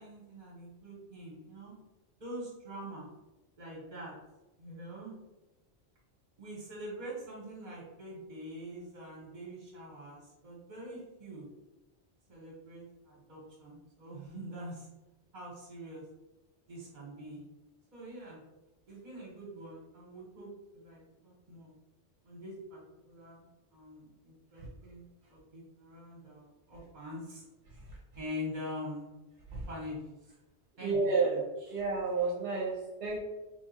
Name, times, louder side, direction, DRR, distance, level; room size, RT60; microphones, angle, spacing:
voice 1, 0.0-1.7 2.2-3.1 3.6-4.1 4.6-5.1 6.4-11.5 12.3-14.9 15.3-16.0 16.7-17.4 17.9-18.4 18.9-21.7 22.2-22.8 23.1-23.4 23.7-27.4 28.1-29.1 29.7-30.3 30.8-30.9 31.2-31.8, equal, 45° right, -5 dB, 1.2 m, -44 dB
voice 2, 30.8-31.4 31.7-33.2, right 4 dB, 75° right, -2 dB, 0.9 m, -30 dB
3.3 x 2.3 x 4.3 m, 1.1 s
omnidirectional pair, 1.1 m